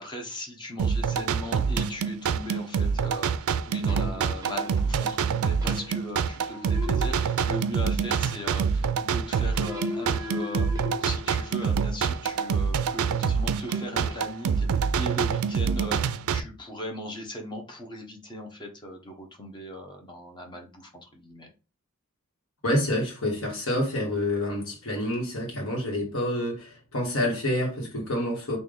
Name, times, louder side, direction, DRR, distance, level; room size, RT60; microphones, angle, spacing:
voice 1, 0.0-10.7 11.0-21.5, equal, 20° left, 0.8 m, -38 dB
sound 1, 0.8-16.4, right 6 dB, 80° right, 0.3 m, -26 dB
sound 2, 3.9-5.2 5.6-6.2 6.5-7.8 9.5-12.0 13.7-14.4, left 3 dB, 15° right, 0.7 m, -39 dB
voice 2, 22.6-28.6, left 1 dB, 65° left, 1.4 m, -28 dB
3.3 x 2.5 x 3.8 m
head